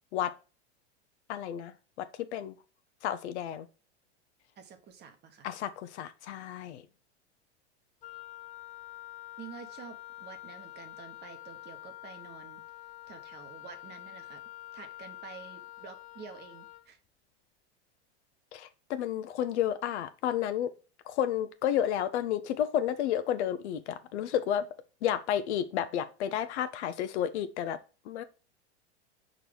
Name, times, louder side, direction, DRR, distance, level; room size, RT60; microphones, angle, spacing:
voice 1, 1.3-1.7 2.0-2.6 3.0-3.7 5.4-6.8 18.5-20.7 21.1-24.7 25.0-27.8 28.0-28.2, left 10 dB, 75° left, 0.8 m, -31 dB
voice 2, 4.6-5.5 9.4-12.6 13.1-14.4 14.7-17.0, right 6 dB, 30° right, 1.1 m, -49 dB
Wind instrument woodwind instrument, 8.0-16.9, left 16 dB, 25° left, 0.4 m, -47 dB
4.6 x 4.0 x 5.1 m
hypercardioid pair, 120°, 34 cm